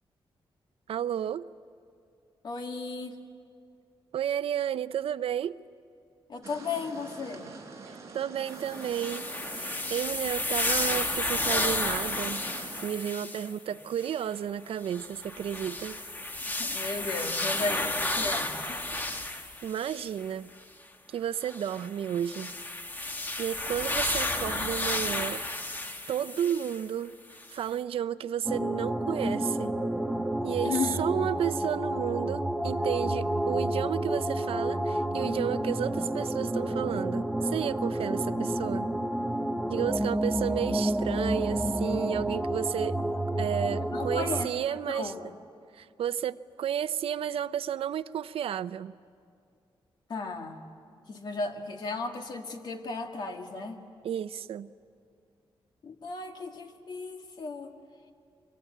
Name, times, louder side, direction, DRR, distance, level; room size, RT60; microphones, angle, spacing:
voice 1, 0.9-1.5 4.1-5.6 8.1-9.3 9.5-12.4 12.8-16.0 19.6-20.5 21.1-22.5 23.4-25.4 26.1-27.1 27.5-29.7 30.4-38.9 39.7-43.0 43.4-45.1 45.7-48.9 54.0-54.7, right 9 dB, 85° right, 15 dB, 0.6 m, -32 dB
voice 2, 2.4-3.2 6.3-7.5 13.2-13.4 16.5-18.8 30.6-31.0 40.1-40.2 43.1-43.2 43.9-45.3 50.1-50.6 51.1-53.8 55.8-57.7, left 3 dB, 50° left, 4 dB, 1.9 m, -35 dB
sound 1, 6.4-12.9, right 4 dB, 35° right, 4.4 m, -45 dB
sound 2, 8.5-13.5 14.0-14.2 14.8-20.3 21.4-26.8 27.4-27.5, left 2 dB, 20° left, 1.2 m, -32 dB
sound 3, 28.5-44.4, right 1 dB, 5° right, 0.8 m, -30 dB
24.0 x 23.0 x 9.3 m, 2.4 s
wide cardioid pair, 175°, 9 cm